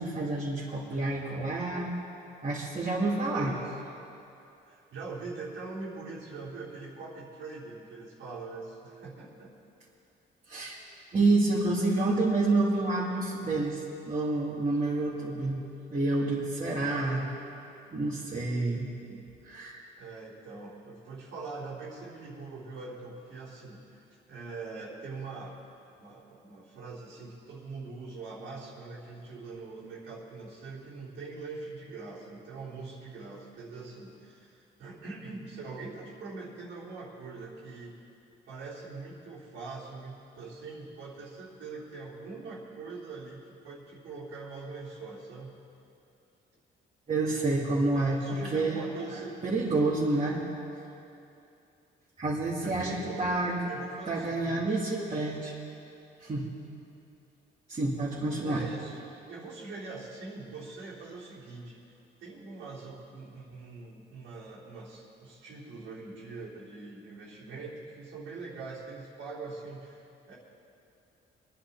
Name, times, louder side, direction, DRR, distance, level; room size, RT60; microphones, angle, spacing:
voice 1, 0.0-1.9 2.4-3.6 10.5-10.8 11.1-15.6 15.9-17.3 17.9-19.2 19.4-19.8 47.1-48.8 49.1-50.4 52.2-53.7 54.1-55.5 56.2-56.5 57.7-58.6, right 2 dB, 35° right, -8 dB, 2.9 m, -28 dB
voice 2, 3.3-3.8 4.7-9.5 16.8-17.1 20.0-25.6 26.0-38.0 38.5-45.6 47.3-49.4 52.6-53.3 53.7-54.8 58.4-59.0 59.3-61.8 62.2-70.3, right 3 dB, 80° right, -7 dB, 3.5 m, -43 dB
23.0 x 10.5 x 4.3 m, 2.7 s
cardioid pair, 90°, 20 cm